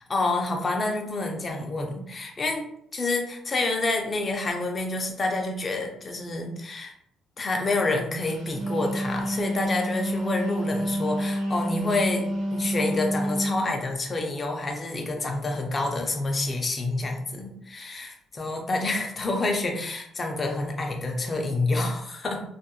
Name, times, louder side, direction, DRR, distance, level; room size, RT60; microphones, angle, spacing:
voice 1, 0.1-2.7 2.9-6.9 7.4-22.4, left 2 dB, 30° left, 2 dB, 0.5 m, -28 dB
Wind instrument woodwind instrument, 8.3-13.7, equal, 75° right, 0.9 m, -28 dB
2.3 x 2.0 x 2.8 m, 0.71 s
cardioid pair, 115°, 0 cm